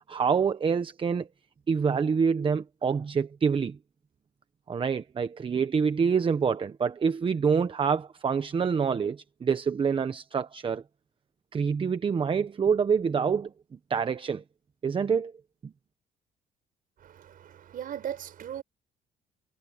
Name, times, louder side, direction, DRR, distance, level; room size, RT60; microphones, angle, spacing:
voice 1, 0.1-1.3 1.7-3.8 4.7-10.8 11.5-13.5 13.9-14.4 14.8-15.3 15.6-15.7, right 6 dB, 30° right, 1.2 m, -26 dB
voice 2, 17.0-18.6, right 10 dB, 55° right, 5.7 m, -38 dB
cardioid pair, 110°, 17 cm